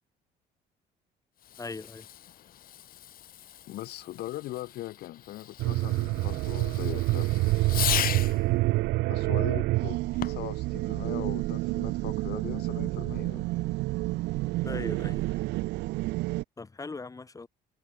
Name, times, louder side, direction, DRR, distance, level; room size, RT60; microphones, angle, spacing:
Fireworks, 1.4-8.5 10.1-10.6, left 11 dB, 60° left, 3.4 m, -37 dB
voice 1, 1.6-2.1 14.6-15.4 16.6-17.5, left 3 dB, 20° left, 2.7 m, -39 dB
voice 2, 3.7-8.2 9.1-13.5, left 15 dB, 75° left, 3.4 m, -40 dB
sound 1, 5.6-16.4, right 20 dB, 85° right, 0.7 m, -28 dB
cardioid pair, 110°, 17 cm